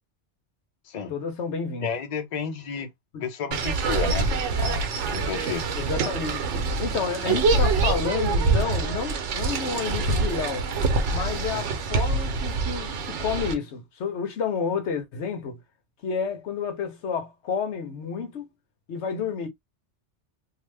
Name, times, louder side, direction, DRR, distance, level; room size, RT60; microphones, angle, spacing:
voice 1, 1.1-1.9 3.1-3.2 5.7-6.5 6.8-10.7 11.1-15.6 16.0-18.5 18.9-19.5, left 6 dB, 75° left, 1.0 m, -30 dB
voice 2, 1.8-2.9 3.2-4.3 4.6-5.6, left 6 dB, 45° left, 0.6 m, -31 dB
sound 1, 3.5-13.5, right 3 dB, 80° right, 1.0 m, -25 dB
2.8 x 2.1 x 3.2 m
omnidirectional pair, 1.2 m